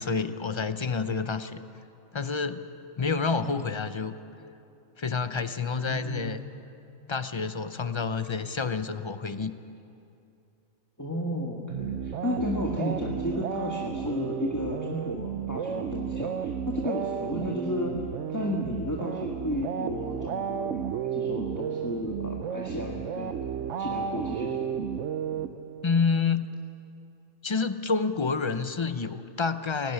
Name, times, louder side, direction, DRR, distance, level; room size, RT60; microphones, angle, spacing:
voice 1, 0.0-1.6 2.1-2.7 3.0-4.1 5.0-6.4 7.1-9.5 25.8-26.5 27.4-29.9, left 5 dB, 35° left, 11 dB, 0.4 m, -28 dB
voice 2, 5.8-6.3 11.0-18.0 18.3-23.4 23.8-24.7, left 1 dB, 15° left, -2 dB, 1.5 m, -33 dB
sound 1, 11.7-26.0, right 8 dB, 65° right, 1.0 m, -33 dB
18.5 x 17.0 x 9.4 m, 2.6 s
omnidirectional pair, 1.4 m